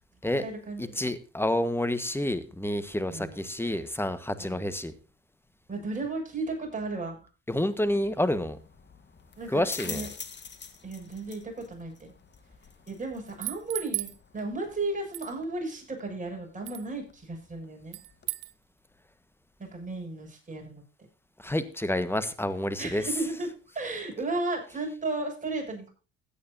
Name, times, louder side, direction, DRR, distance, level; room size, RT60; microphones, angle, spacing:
voice 1, 0.2-1.0 3.1-3.5 4.4-4.6 5.7-7.3 9.4-10.1 10.8-12.1 12.9-18.0 19.6-20.8 22.8-23.5 23.7-25.9, right 2 dB, 25° right, 0 dB, 7.1 m, -34 dB
voice 2, 0.8-4.9 7.5-8.6 9.5-10.1 21.4-23.1, left 1 dB, 5° left, 13 dB, 1.4 m, -29 dB
sound 1, 7.7-18.3, left 6 dB, 35° left, 1.6 m, -47 dB
sound 2, 13.3-14.2 15.1-15.3 16.7-16.9 17.9-18.5, right 22 dB, 85° right, 0.7 m, -35 dB
16.0 x 9.7 x 2.8 m, 0.33 s
supercardioid pair, 65°, 32 cm